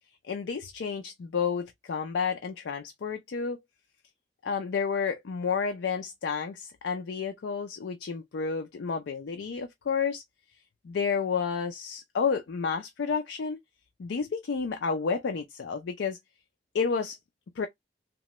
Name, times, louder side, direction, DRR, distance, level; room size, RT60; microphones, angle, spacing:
voice 1, 0.3-3.6 4.4-10.2 10.8-13.6 14.0-16.2 16.7-17.2 17.6-17.7, left 5 dB, 85° left, 0.4 m, -30 dB
2.9 x 2.2 x 3.0 m
head